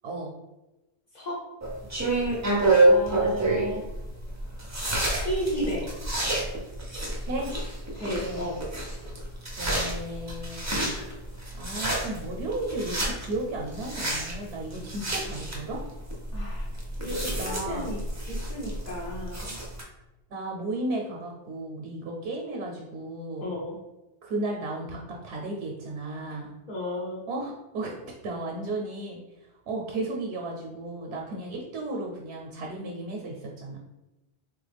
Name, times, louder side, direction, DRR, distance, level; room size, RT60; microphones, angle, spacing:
sound 1, 1.6-19.8, right 2 dB, 20° right, 0.5 m, -28 dB
voice 1, 2.8-3.8 4.7-4.8 5.2-5.9 8.0-8.6 16.3-16.7 17.0-18.0 18.3-19.6 23.4-23.8 26.7-27.2, equal, 45° left, -6 dB, 0.8 m, -33 dB
voice 2, 9.6-10.6 11.5-15.8 17.0-17.1 17.4-18.0 20.3-23.5 24.2-26.5 27.3-29.2 29.7-33.8, right 2 dB, 90° right, 0 dB, 0.9 m, -34 dB
3.4 x 2.1 x 3.3 m, 1.0 s
omnidirectional pair, 1.1 m